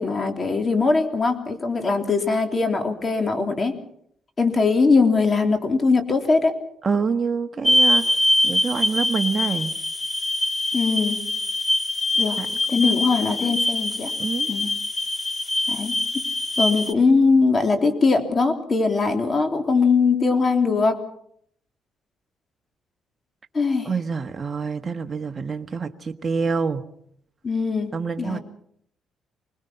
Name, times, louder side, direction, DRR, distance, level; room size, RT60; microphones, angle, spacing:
voice 1, 0.0-3.8 4.4-6.5 10.7-11.2 12.2-12.4 12.7-14.1 14.5-14.7 15.7-16.2 16.6-21.0 23.5-23.9 27.4-27.9 28.2-28.4, left 4 dB, 35° left, 5 dB, 3.3 m, -21 dB
voice 2, 6.8-8.2 8.4-9.7 12.4-12.5 12.8-12.9 13.2-13.6 14.2-14.5 23.8-26.8 27.9-28.4, right 5 dB, 35° right, 6 dB, 1.4 m, -26 dB
sound 1, 7.6-16.9, left 1 dB, 15° left, 1.7 m, -23 dB
25.5 x 20.0 x 5.7 m, 0.68 s
cardioid pair, 90°, 0 cm